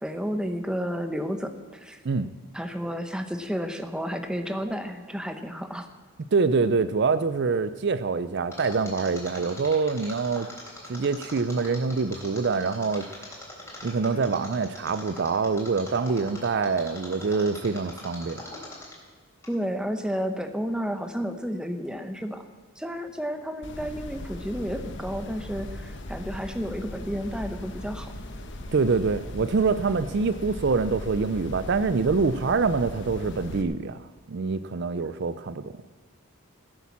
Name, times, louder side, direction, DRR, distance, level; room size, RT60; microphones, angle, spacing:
voice 1, 0.0-2.0 2.5-5.9 19.5-22.4 22.8-28.1, equal, 5° right, 7 dB, 0.9 m, -31 dB
voice 2, 6.3-10.5 10.9-13.1 13.8-18.4 28.7-34.0 34.3-35.7, right 4 dB, 50° right, 13 dB, 0.4 m, -25 dB
Mechanisms, 8.5-19.1 19.4-19.5, left 2 dB, 10° left, 3.7 m, -41 dB
sound 1, 23.6-33.6, left 1 dB, 55° left, 1.2 m, -39 dB
16.5 x 8.4 x 7.2 m, 1.5 s
head